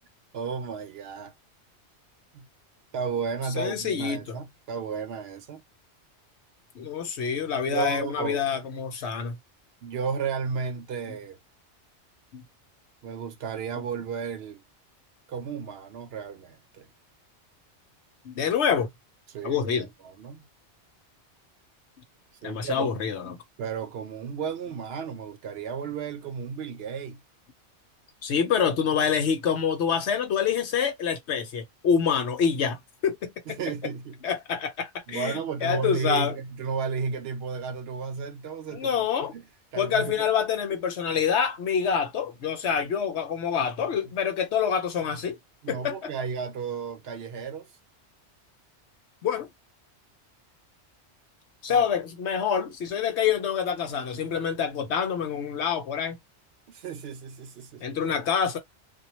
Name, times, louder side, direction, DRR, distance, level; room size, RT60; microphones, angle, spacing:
voice 1, 0.3-1.3 2.3-2.5 2.9-5.6 7.7-8.4 9.8-11.4 13.0-14.6 15.3-16.9 19.3-20.4 22.4-23.0 23.6-27.2 33.5-34.2 35.1-39.4 39.7-40.3 45.6-47.7 51.7-51.9 56.7-57.9, right 6 dB, 65° right, 0.8 m, -33 dB
voice 2, 3.6-4.4 6.7-9.4 12.3-12.4 18.2-18.9 19.4-19.9 22.4-23.4 28.2-33.6 34.2-36.3 38.7-39.3 39.8-45.4 45.7-46.1 49.2-49.5 51.6-56.2 57.8-58.6, left 7 dB, 70° left, 1.0 m, -26 dB
2.2 x 2.2 x 2.9 m
omnidirectional pair, 1.2 m